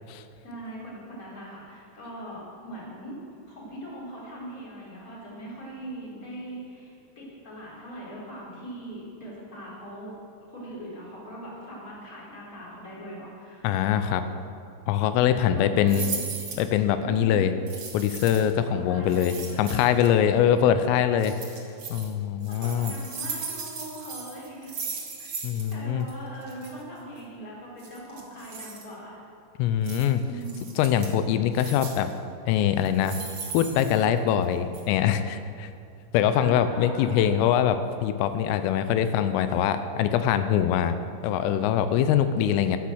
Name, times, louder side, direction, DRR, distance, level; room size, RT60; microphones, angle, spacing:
voice 1, 0.4-3.1 3.5-10.1 10.5-14.2 15.3-16.2 17.0-17.6 18.6-19.8 22.5-24.7 25.2-25.3 25.7-29.2 30.2-30.7 36.3-37.2, right 1 dB, 20° left, -5 dB, 4.0 m, -40 dB
voice 2, 13.6-14.2 14.9-16.1 16.6-17.5 17.9-21.5 21.9-22.9 25.4-26.1 29.6-30.2 30.8-32.1 32.5-33.2 33.5-35.7 36.1-41.0 41.2-42.8, left 9 dB, 90° left, 10 dB, 3.3 m, -23 dB
sound 1, 15.9-16.7 17.7-18.5 19.1-20.1 21.2-22.1 22.4-25.7 26.0-26.1 26.4-26.7 27.8-28.8 29.8-30.0 30.4-31.1 31.5-32.1 32.8-34.4 34.7-34.8, right 5 dB, 65° right, 1.3 m, -37 dB
14.0 x 12.5 x 6.3 m, 2.6 s
omnidirectional pair, 5.9 m